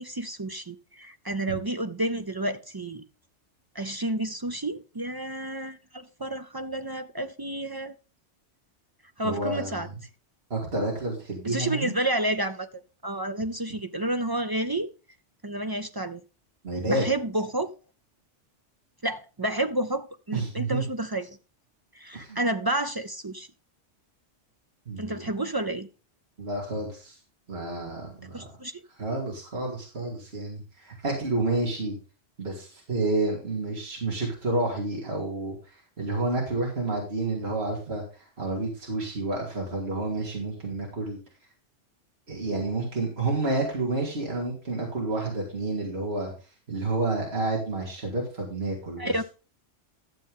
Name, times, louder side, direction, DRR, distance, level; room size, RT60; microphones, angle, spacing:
voice 1, 0.0-3.1 3.7-7.9 9.2-9.9 11.4-12.7 13.0-14.9 15.4-16.2 16.9-17.7 19.0-21.4 21.9-23.5 25.0-25.9 28.3-28.8 49.0-49.2, right 1 dB, 35° right, 0.4 m, -30 dB
voice 2, 9.2-10.0 10.5-11.9 16.6-17.1 20.3-20.8 22.1-22.4 24.9-25.3 26.4-27.2 27.5-28.5 29.0-32.0 32.4-41.2 42.3-46.3 46.7-49.2, right 2 dB, 55° right, 2.9 m, -30 dB
12.0 x 7.4 x 3.7 m
omnidirectional pair, 1.2 m